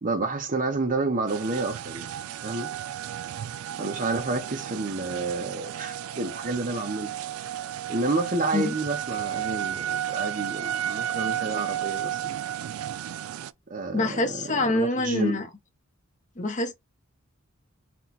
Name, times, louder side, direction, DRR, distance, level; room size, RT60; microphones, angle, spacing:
voice 1, 0.0-2.2 2.4-2.7 3.8-7.1 7.9-12.4 13.7-15.4, right 3 dB, 40° right, 0.8 m, -30 dB
sound 1, 1.3-13.5, right 10 dB, 90° right, 0.3 m, -33 dB
voice 2, 13.9-15.5 16.4-16.7, left 2 dB, 35° left, 0.9 m, -25 dB
4.4 x 2.2 x 4.1 m
head